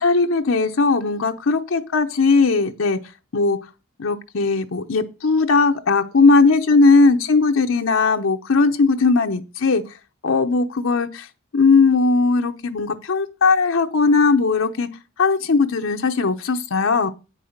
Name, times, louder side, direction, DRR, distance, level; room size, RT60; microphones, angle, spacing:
voice 1, 0.0-3.0 3.3-3.6 4.0-9.8 10.2-11.3 11.5-14.9 15.2-17.1, left 4 dB, 80° left, 0.7 m, -18 dB
8.6 x 5.5 x 6.4 m
head